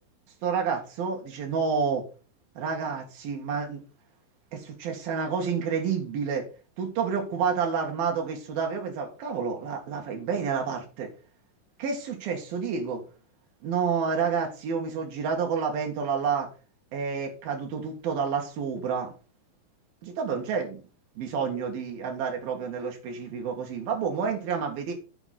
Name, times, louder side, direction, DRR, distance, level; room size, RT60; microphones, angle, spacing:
voice 1, 0.4-2.1 2.6-3.8 4.5-6.5 6.8-11.1 11.8-13.0 13.6-16.5 16.9-19.1 20.0-20.8 21.2-24.9, right 6 dB, 85° right, 3.7 m, -29 dB
9.1 x 5.9 x 5.8 m
omnidirectional pair, 4.1 m